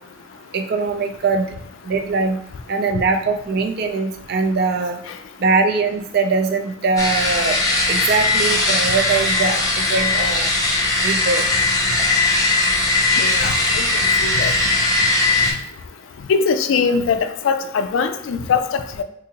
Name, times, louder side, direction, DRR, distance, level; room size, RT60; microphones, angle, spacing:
voice 1, 0.5-1.5 1.9-2.4 2.7-5.0 5.4-7.6 7.9-10.5 11.0-11.4, right 4 dB, 50° right, 5 dB, 0.4 m, -21 dB
sound 1, 7.0-15.5, left 2 dB, 15° left, 0.5 m, -19 dB
voice 2, 13.2-13.9 14.2-14.5 16.3-19.0, left 5 dB, 75° left, 10 dB, 0.3 m, -21 dB
3.8 x 2.6 x 2.8 m, 0.71 s
head